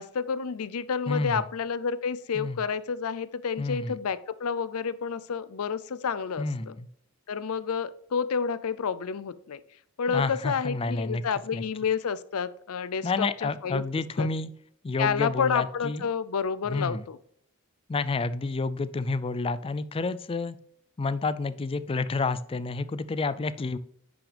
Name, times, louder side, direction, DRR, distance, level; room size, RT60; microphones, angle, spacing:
voice 1, 0.0-6.7 7.3-9.6 10.0-13.8 14.2-14.3 15.0-17.2, left 6 dB, 75° left, 16 dB, 0.5 m, -30 dB
voice 2, 1.1-1.4 2.3-2.6 3.6-3.9 6.4-6.9 10.1-11.2 11.5-11.6 13.0-14.5 14.8-16.1 16.7-17.0 17.9-20.6 21.0-23.8, left 3 dB, 25° left, 15 dB, 0.3 m, -29 dB
10.0 x 6.0 x 3.4 m, 0.69 s
head